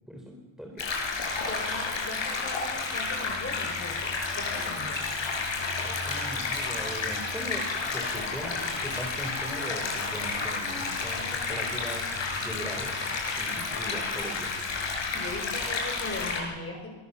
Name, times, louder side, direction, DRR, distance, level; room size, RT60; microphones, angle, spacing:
voice 1, 0.1-0.9 5.8-13.0 13.4-14.5, equal, ahead, 0 dB, 3.7 m, -40 dB
sound 1, 0.8-16.4, left 4 dB, 75° left, 6.8 m, -31 dB
voice 2, 1.4-5.2 13.6-13.7 15.1-16.9, left 2 dB, 30° left, 3 dB, 4.3 m, -39 dB
27.0 x 23.0 x 6.9 m, 1.2 s
wide cardioid pair, 175°, 45 cm